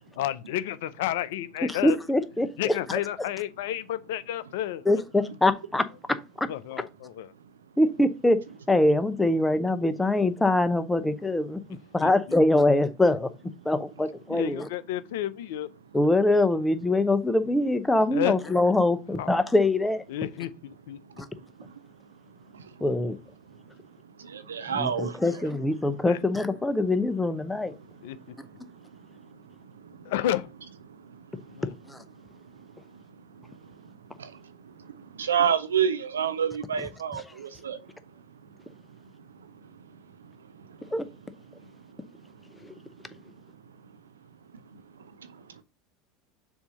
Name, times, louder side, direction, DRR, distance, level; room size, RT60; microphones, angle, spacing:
voice 1, 0.2-2.0 2.6-4.8 6.5-7.3 12.0-12.1 14.3-15.7 18.1-18.5 19.2-19.3 20.1-21.0 26.1-26.2 28.0-28.2 30.1-30.5 31.6-31.7, left 12 dB, 70° left, 0.4 m, -31 dB
voice 2, 1.7-2.8 4.9-6.5 7.8-8.4 8.7-11.6 11.9-13.3 13.6-14.7 15.9-20.0 22.8-23.2 24.7-27.7 31.9-32.0 40.9-41.0, left 2 dB, 10° left, 0.8 m, -23 dB
voice 3, 24.3-25.5 34.2-34.3 35.2-37.8, right 8 dB, 90° right, 0.6 m, -27 dB
7.0 x 2.8 x 5.1 m
hypercardioid pair, 80°, 0 cm